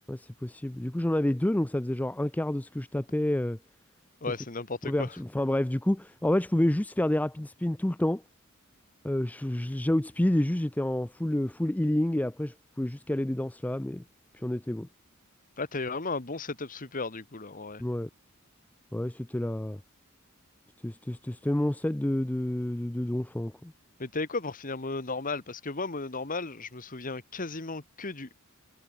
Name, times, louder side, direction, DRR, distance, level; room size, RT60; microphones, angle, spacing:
voice 1, 0.1-3.6 4.8-8.2 9.0-14.0 14.3-14.9 17.8-18.1 18.9-19.8 20.8-23.7, left 1 dB, 5° left, 0.4 m, -29 dB
voice 2, 4.2-5.1 15.6-17.8 24.0-28.3, left 3 dB, 40° left, 1.7 m, -35 dB
head